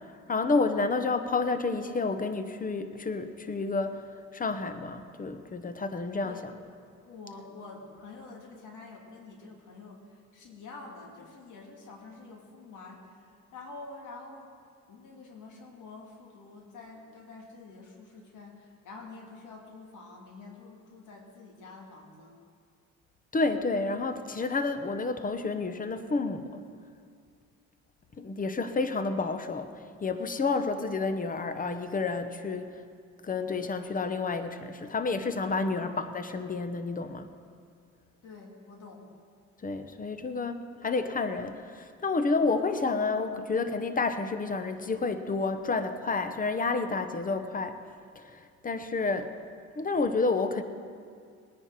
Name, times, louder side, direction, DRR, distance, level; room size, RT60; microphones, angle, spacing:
voice 1, 0.3-4.0 4.3-6.4 23.3-26.5 28.2-29.7 30.0-32.7 33.2-37.3 39.6-47.8 48.1-49.3 49.8-50.6, left 3 dB, 30° left, 9 dB, 1.0 m, -30 dB
voice 2, 6.2-13.2 13.5-14.5 14.9-22.3 35.8-36.0 38.2-39.1, left 3 dB, 80° left, 1 dB, 2.4 m, -47 dB
19.5 x 9.8 x 4.8 m, 2.2 s
cardioid pair, 90°, 30 cm